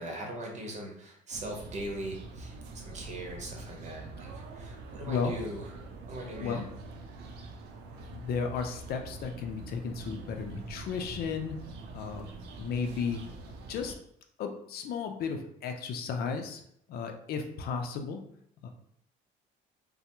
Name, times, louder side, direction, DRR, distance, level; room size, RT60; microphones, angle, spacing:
voice 1, 0.0-5.6 6.1-6.7, right 1 dB, 45° right, 0 dB, 0.9 m, -40 dB
sound 1, 1.3-14.0, right 2 dB, 85° right, 0.5 m, -45 dB
voice 2, 8.1-11.6 11.9-12.3 12.6-13.2 13.7-13.9 14.4-16.6 16.9-18.2 18.6-18.7, left 5 dB, 65° left, 5 dB, 0.5 m, -34 dB
3.2 x 2.0 x 3.0 m, 0.70 s
cardioid pair, 110°, 17 cm